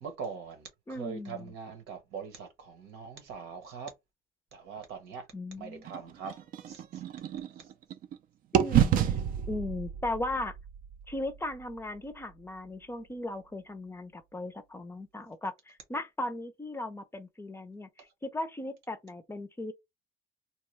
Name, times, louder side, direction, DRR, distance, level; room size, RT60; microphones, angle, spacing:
voice 1, 0.0-3.9 4.5-5.3 5.6-6.4 6.7-7.0 7.6-7.7, right 6 dB, 85° right, 1.1 m, -42 dB
voice 2, 0.9-1.5 5.3-5.9 8.5-9.0 9.5-10.6 11.1-19.7, left 2 dB, 15° left, 0.5 m, -37 dB
sound 1, 5.8-8.2 8.5-12.5, right 9 dB, 55° right, 0.5 m, -31 dB
2.8 x 2.2 x 3.1 m
cardioid pair, 110°, 17 cm